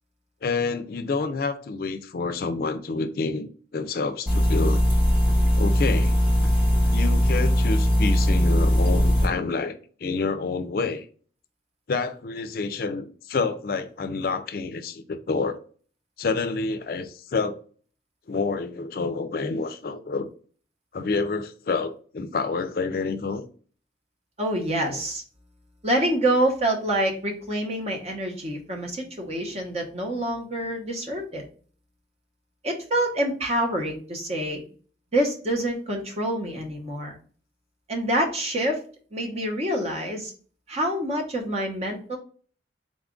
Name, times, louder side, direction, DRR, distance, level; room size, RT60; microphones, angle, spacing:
voice 1, 0.4-4.8 5.6-6.2 6.9-11.1 11.9-15.6 16.2-17.6 18.3-20.3 20.9-23.5 24.9-25.0, left 4 dB, 55° left, 0.4 m, -28 dB
sound 1, 4.3-9.3, equal, 10° right, 0.9 m, -20 dB
voice 2, 24.4-25.2 25.8-31.4 32.6-34.6 35.1-37.2 37.9-38.8 39.1-40.3 40.7-42.2, right 1 dB, 35° right, 0.9 m, -26 dB
3.9 x 2.4 x 3.6 m
head